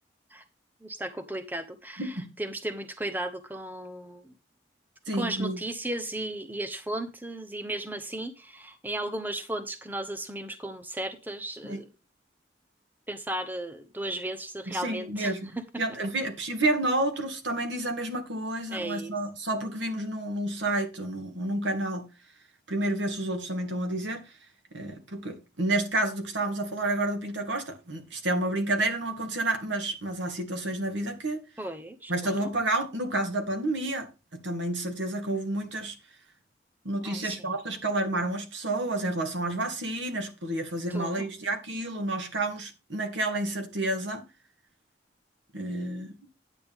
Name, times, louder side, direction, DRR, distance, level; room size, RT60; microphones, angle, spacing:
voice 1, 0.8-4.3 5.1-11.8 13.1-15.3 18.7-19.1 31.6-32.5 37.0-37.4 40.9-41.3, right 1 dB, 10° right, 0.8 m, -35 dB
voice 2, 2.0-2.3 5.1-5.6 11.6-11.8 14.7-15.5 15.8-22.1 22.7-24.2 24.7-31.4 32.1-36.0 36.8-44.2 45.5-46.2, right 2 dB, 90° right, 2.1 m, -30 dB
9.6 x 7.8 x 3.6 m
head